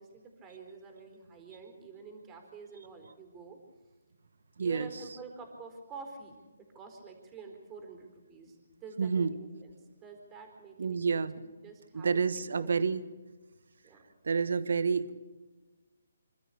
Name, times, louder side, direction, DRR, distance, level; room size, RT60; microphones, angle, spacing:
voice 1, 0.0-3.6 4.6-6.4 6.7-12.9 13.8-14.0, right 4 dB, 15° right, 4 dB, 4.2 m, -48 dB
voice 2, 9.0-9.4 10.8-11.4 11.9-13.0 14.2-15.1, right 5 dB, 70° right, 14 dB, 1.2 m, -29 dB
26.5 x 13.0 x 8.6 m, 1.2 s
hypercardioid pair, 150°, 0 cm